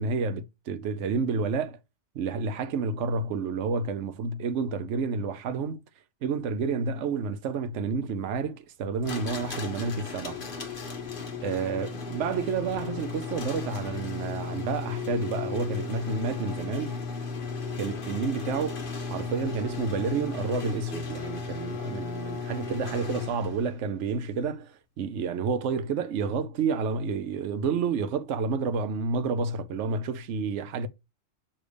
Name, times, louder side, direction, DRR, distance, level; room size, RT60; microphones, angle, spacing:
voice 1, 0.0-1.8 2.1-5.8 6.2-10.4 11.4-17.0 17.8-18.8 19.1-30.9, right 5 dB, 70° right, 1.0 m, -30 dB
sound 1, 9.0-23.7, left 5 dB, 45° left, 1.2 m, -35 dB
6.7 x 2.8 x 5.1 m
omnidirectional pair, 1.3 m